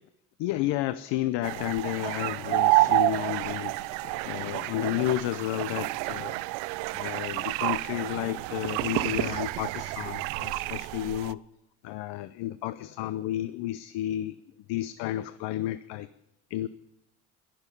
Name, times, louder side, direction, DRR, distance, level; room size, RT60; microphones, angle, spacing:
voice 1, 0.4-6.4 6.9-11.4 11.8-14.4 14.7-16.1 16.5-16.7, left 14 dB, 80° left, 14 dB, 0.7 m, -32 dB
sound 1, 1.4-11.3, right 20 dB, 85° right, 0.5 m, -29 dB
21.5 x 7.1 x 5.4 m, 0.81 s
supercardioid pair, 70°, 42 cm